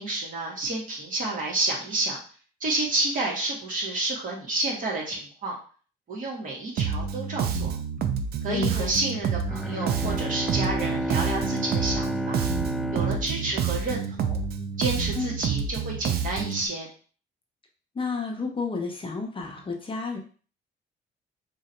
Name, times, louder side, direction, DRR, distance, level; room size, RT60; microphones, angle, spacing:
voice 1, 0.0-2.2 2.6-5.6 6.1-7.7 8.4-12.4 12.9-14.4 14.8-16.9, right 2 dB, 50° right, -3 dB, 2.0 m, -30 dB
Bass guitar, 6.8-16.7, right 7 dB, 65° right, 0.6 m, -29 dB
voice 2, 8.5-9.0 15.1-15.3 17.9-20.2, left 4 dB, 30° left, 1 dB, 0.9 m, -31 dB
Bowed string instrument, 9.5-14.4, equal, ahead, 0.3 m, -31 dB
3.8 x 2.7 x 4.4 m, 0.40 s
cardioid pair, 105°, 17 cm